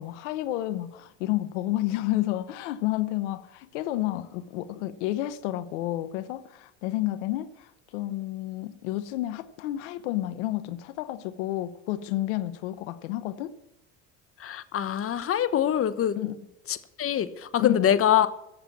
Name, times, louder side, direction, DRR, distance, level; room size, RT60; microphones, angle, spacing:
voice 1, 0.0-13.5 16.2-16.4 17.6-17.9, left 15 dB, 85° left, 1.0 m, -30 dB
voice 2, 14.4-16.2 16.7-18.3, left 10 dB, 40° left, 1.2 m, -24 dB
15.0 x 7.7 x 8.4 m
supercardioid pair, 90°, 35 cm